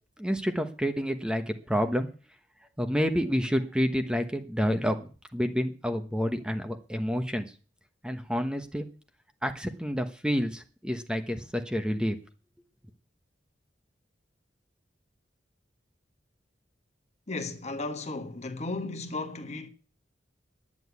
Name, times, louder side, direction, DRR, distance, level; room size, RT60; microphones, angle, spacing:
voice 1, 0.2-2.1 2.8-7.5 8.0-8.9 9.4-12.2, equal, 5° right, 1.1 m, -29 dB
voice 2, 17.3-19.7, left 2 dB, 40° left, 1.5 m, -35 dB
10.5 x 9.6 x 8.2 m
head